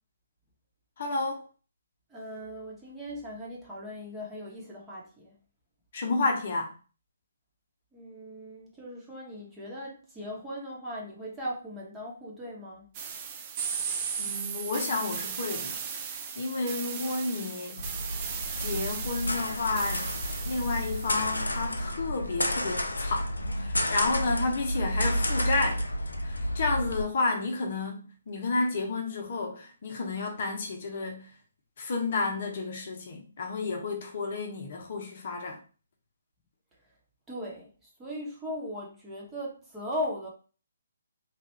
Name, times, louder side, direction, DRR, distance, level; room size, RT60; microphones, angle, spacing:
voice 1, 1.0-1.4 5.9-6.7 14.2-15.8 16.0-17.9 18.6-20.1 20.4-23.3 23.5-25.8 26.2-31.3 31.8-35.6, left 3 dB, 50° left, 0.8 m, -31 dB
voice 2, 2.1-5.3 7.9-12.9 37.3-37.7 38.0-40.3, equal, 10° right, 1.1 m, -38 dB
sound 1, 12.9-21.4, right 6 dB, 35° right, 0.5 m, -36 dB
sound 2, 17.8-27.0, left 1 dB, 90° left, 0.5 m, -31 dB
3.1 x 2.5 x 3.1 m
figure-of-eight pair, 140°, 0 cm